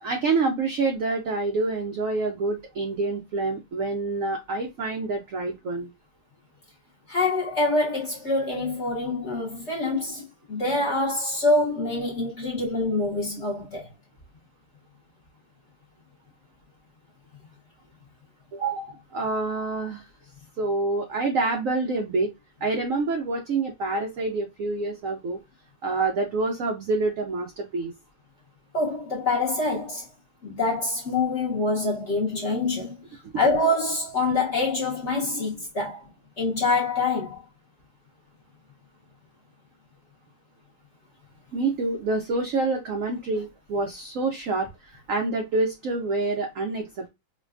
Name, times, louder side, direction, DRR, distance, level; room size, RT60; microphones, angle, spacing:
voice 1, 0.0-5.9 18.5-20.1 20.6-22.3 22.6-25.4 25.8-27.9 41.5-47.1, right 3 dB, 70° right, 0.7 m, -27 dB
voice 2, 7.1-13.9 28.7-30.1 30.4-33.0 33.3-36.0 36.4-37.4, left 2 dB, 50° left, 0.9 m, -25 dB
4.7 x 2.2 x 2.4 m
omnidirectional pair, 2.0 m